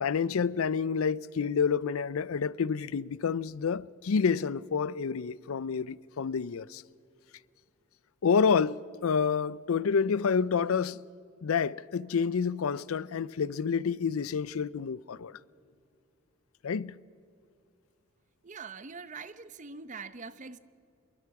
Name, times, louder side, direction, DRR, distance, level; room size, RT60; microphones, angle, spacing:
voice 1, 0.0-6.8 8.2-11.0 11.4-15.3 16.6-17.0, left 6 dB, 85° left, 0.5 m, -28 dB
voice 2, 18.4-20.6, right 5 dB, 35° right, 0.7 m, -43 dB
26.5 x 22.5 x 4.8 m
head